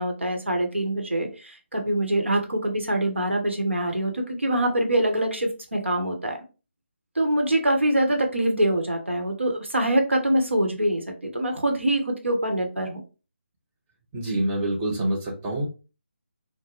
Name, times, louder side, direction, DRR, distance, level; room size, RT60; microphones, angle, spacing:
voice 1, 0.0-6.4 7.1-13.0, right 1 dB, 80° right, 2 dB, 1.0 m, -24 dB
voice 2, 14.1-15.7, right 1 dB, 15° right, -2 dB, 0.7 m, -26 dB
3.9 x 2.1 x 3.0 m, 0.32 s
figure-of-eight pair, 150°, 6 cm